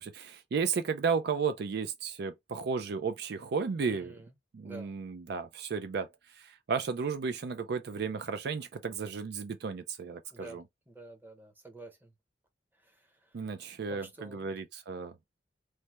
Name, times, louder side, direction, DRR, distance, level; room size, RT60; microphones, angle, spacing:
voice 1, 0.0-4.1 4.5-10.6 13.3-15.2, right 5 dB, 60° right, 0.4 m, -34 dB
voice 2, 3.9-4.3 4.6-4.9 10.3-10.6 10.9-12.1 12.7-13.5 13.9-14.5, right 1 dB, 10° right, 0.8 m, -49 dB
3.2 x 2.2 x 2.8 m
head